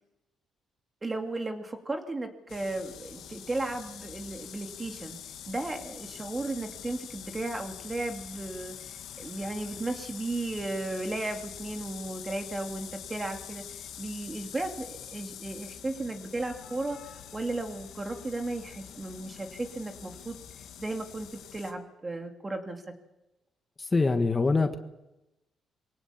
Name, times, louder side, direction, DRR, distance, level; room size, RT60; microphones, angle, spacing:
voice 1, 1.0-5.2 5.5-8.7 9.2-20.4 20.8-22.8, right 2 dB, 25° right, 4 dB, 2.7 m, -35 dB
sound 1, 2.5-21.7, left 9 dB, 80° left, 2.1 m, -45 dB
voice 2, 23.8-24.8, left 3 dB, 25° left, 7 dB, 1.4 m, -24 dB
23.0 x 17.0 x 7.3 m, 0.96 s
cardioid pair, 90°, 0 cm